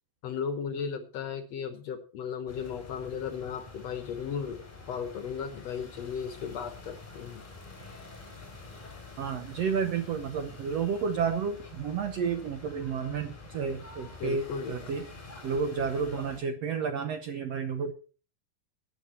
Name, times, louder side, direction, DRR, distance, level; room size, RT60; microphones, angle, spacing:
voice 1, 0.2-4.6 4.9-7.4 14.2-14.9, left 7 dB, 65° left, 9 dB, 1.9 m, -36 dB
sound 1, 2.5-16.4, left 3 dB, 15° left, 3.3 m, -47 dB
voice 2, 9.2-15.1 15.4-17.9, right 6 dB, 70° right, 8 dB, 1.6 m, -31 dB
15.5 x 9.2 x 4.3 m, 0.37 s
omnidirectional pair, 3.9 m